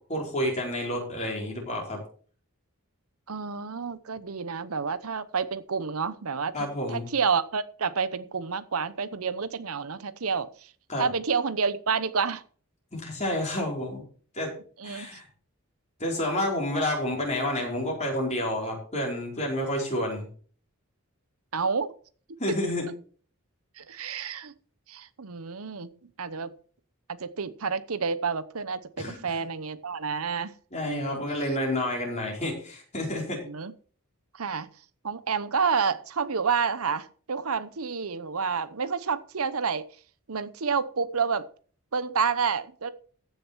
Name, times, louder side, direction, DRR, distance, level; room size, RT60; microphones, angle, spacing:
voice 1, 0.1-2.0 6.5-7.1 10.9-11.0 12.9-14.0 14.3-14.5 14.8-15.2 16.0-20.3 22.4-22.9 29.0-29.2 30.7-33.4, left 1 dB, 30° left, -2 dB, 5.0 m, -29 dB
voice 2, 3.3-10.7 11.0-12.4 14.8-15.2 21.5-21.9 23.8-24.5 24.9-25.9 26.2-26.5 27.2-30.5 30.9-31.2 33.5-33.7 34.3-34.7 35.0-39.8 40.3-41.5 41.9-42.9, right 5 dB, 85° right, 14 dB, 0.9 m, -29 dB
15.0 x 6.7 x 4.6 m, 0.43 s
head